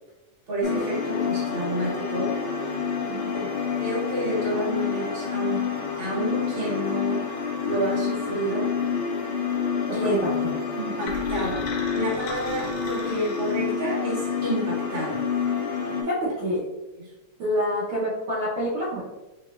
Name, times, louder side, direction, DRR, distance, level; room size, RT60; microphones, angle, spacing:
voice 1, 0.5-2.3 3.3-3.4 3.8-5.6 6.0-7.2 7.6-8.7 9.9-10.2 10.7-15.2, right 1 dB, 45° right, -6 dB, 0.7 m, -29 dB
sound 1, 0.6-16.0, left 6 dB, 70° left, 1.9 m, -28 dB
voice 2, 9.9-10.3 16.0-16.6 17.4-19.0, equal, 65° right, -8 dB, 1.3 m, -27 dB
sound 2, 11.1-14.1, left 3 dB, 85° left, 1.3 m, -38 dB
5.2 x 3.9 x 2.4 m, 1.1 s
omnidirectional pair, 3.4 m